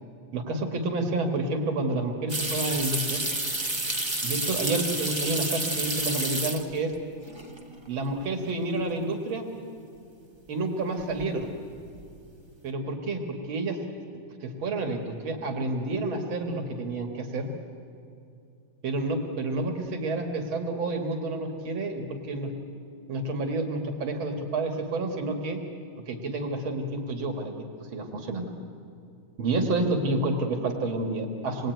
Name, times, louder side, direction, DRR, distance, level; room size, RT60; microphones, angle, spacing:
voice 1, 0.3-3.2 4.2-6.9 7.9-9.4 10.5-11.5 12.6-13.8 14.4-17.5 18.8-22.5 23.1-25.6 26.1-27.5 27.9-28.5 29.4-31.7, right 2 dB, 75° right, 4 dB, 2.7 m, -29 dB
sound 1, 2.3-7.0 7.3-7.9 8.2-8.3 11.0-11.4 11.7-12.2, right 2 dB, 15° right, 1.0 m, -30 dB
26.0 x 21.0 x 9.2 m, 2.5 s
omnidirectional pair, 2.2 m